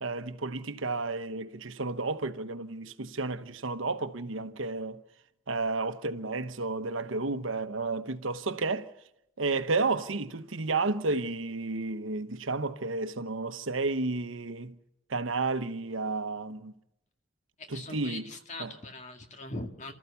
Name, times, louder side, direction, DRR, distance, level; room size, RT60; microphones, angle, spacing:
voice 1, 0.0-5.0 5.5-8.9 9.4-14.7 15.1-16.7 17.7-18.3 18.6-18.7, right 3 dB, 75° right, 1.1 m, -32 dB
voice 2, 17.6-19.9, left 2 dB, 35° left, 2.0 m, -41 dB
29.5 x 14.0 x 6.9 m
head